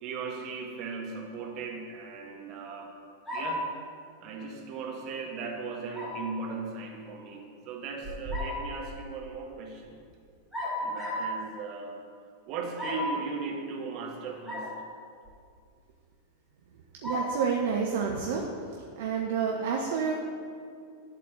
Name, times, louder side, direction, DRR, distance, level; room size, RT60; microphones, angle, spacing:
voice 1, 0.0-2.9 3.3-3.6 4.2-10.0 10.8-11.9 12.5-14.7, right 4 dB, 40° right, 0 dB, 1.7 m, -37 dB
sound 1, 3.3-3.7 5.9-6.2 8.0-8.6 10.5-11.3 12.8-13.2 14.4-14.7 15.2-15.3 17.0-17.4, left 1 dB, ahead, 2.6 m, -33 dB
voice 2, 17.0-18.4 19.0-20.1, right 6 dB, 55° right, 0 dB, 0.8 m, -29 dB
11.0 x 4.2 x 6.8 m, 2.3 s
figure-of-eight pair, 90°, 0 cm